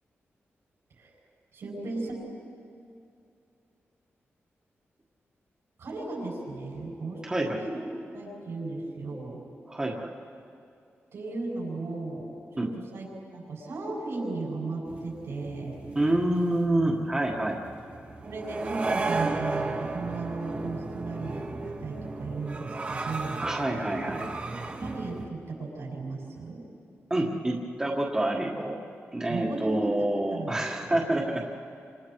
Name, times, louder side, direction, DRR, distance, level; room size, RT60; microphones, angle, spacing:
voice 1, 1.5-2.2 5.8-7.8 8.1-9.4 11.1-15.8 18.2-23.5 24.5-26.7 29.3-31.0, right 3 dB, 80° right, -3 dB, 7.8 m, -36 dB
voice 2, 7.2-7.6 9.7-10.1 12.6-12.7 15.9-17.6 23.4-24.3 27.1-28.8 29.1-31.5, right 1 dB, 15° right, -2 dB, 1.6 m, -27 dB
sound 1, 14.9-25.3, right 3 dB, 30° right, 1.4 m, -35 dB
29.5 x 27.0 x 4.7 m, 2.5 s
wide cardioid pair, 175°, 4 cm